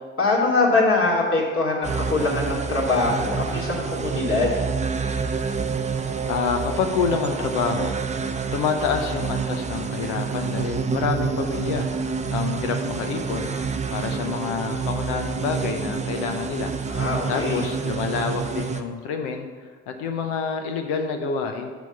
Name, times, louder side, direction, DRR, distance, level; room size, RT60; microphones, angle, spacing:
voice 1, 0.2-4.6 16.9-17.6, left 3 dB, 45° left, -3 dB, 2.6 m, -23 dB
sound 1, 1.8-18.8, right 5 dB, 20° right, 0.6 m, -28 dB
voice 2, 6.3-8.0 8.5-11.9 12.3-13.5 13.9-16.7 17.3-19.5 19.9-21.7, left 6 dB, 75° left, 5 dB, 0.8 m, -27 dB
6.1 x 5.3 x 6.9 m, 1.5 s
hypercardioid pair, 55°, 31 cm